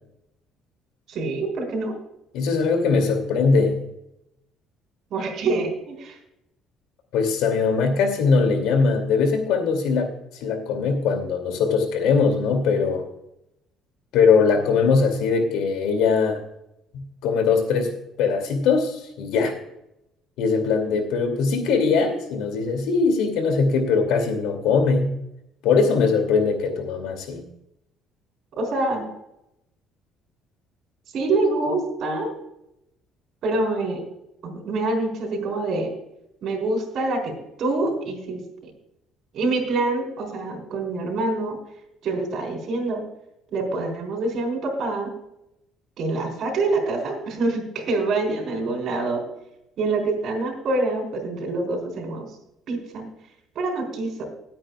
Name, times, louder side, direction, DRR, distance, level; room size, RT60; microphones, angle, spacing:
voice 1, 1.1-1.9 5.1-6.2 28.6-29.0 31.1-32.3 33.4-34.0 34.4-35.9 36.4-37.3 37.6-38.7 39.3-41.6 42.0-43.0 43.5-45.1 46.0-49.2 49.8-52.3 52.7-53.1 53.5-54.3, right 2 dB, 55° right, 2 dB, 4.0 m, -25 dB
voice 2, 2.3-3.8 7.1-10.1 10.4-13.0 14.1-16.4 16.9-17.9 18.2-19.5 20.4-25.2 25.6-27.4, left 5 dB, 80° left, 6 dB, 2.6 m, -21 dB
20.0 x 8.8 x 2.4 m, 0.84 s
cardioid pair, 145°, 0 cm